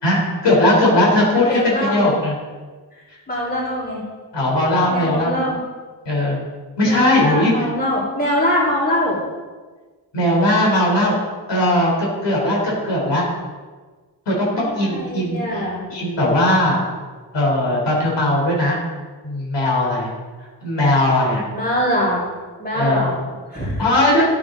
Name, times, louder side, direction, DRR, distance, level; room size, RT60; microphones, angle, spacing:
voice 1, 0.0-2.3 4.3-5.3 6.1-6.4 6.8-7.5 10.1-11.1 11.5-13.2 14.3-15.6 15.9-16.8 17.3-18.8 19.2-20.1 20.6-21.4 22.7-23.0 23.8-24.2, left 1 dB, 85° left, -3 dB, 3.6 m, -18 dB
voice 2, 1.5-2.1 3.3-4.0 4.9-5.6 6.8-9.2 14.6-15.8 21.5-22.3 22.6-23.8, equal, 20° left, -7 dB, 3.7 m, -23 dB
13.5 x 8.8 x 3.8 m, 1.4 s
wide cardioid pair, 170°, 41 cm